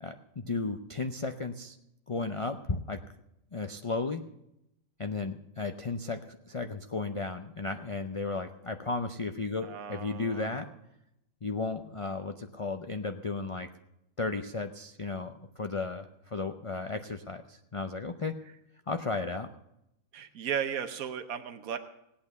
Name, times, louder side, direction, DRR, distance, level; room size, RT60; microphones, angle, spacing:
voice 1, 0.0-1.8 2.1-3.0 3.5-4.2 5.0-10.7 11.4-13.7 14.2-18.4 18.9-19.5, left 3 dB, 35° left, 7 dB, 0.6 m, -34 dB
voice 2, 9.6-10.7 20.1-21.8, right 8 dB, 85° right, 8 dB, 1.3 m, -35 dB
18.5 x 8.7 x 6.9 m, 0.84 s
omnidirectional pair, 1.4 m